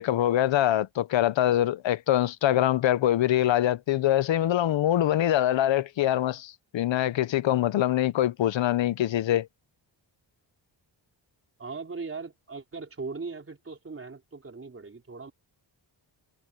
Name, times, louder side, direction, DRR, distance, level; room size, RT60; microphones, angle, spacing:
voice 1, 0.0-9.5, left 12 dB, 80° left, 0.7 m, -24 dB
voice 2, 11.6-15.3, right 4 dB, 30° right, 4.3 m, -39 dB
wide cardioid pair, 175°, 45 cm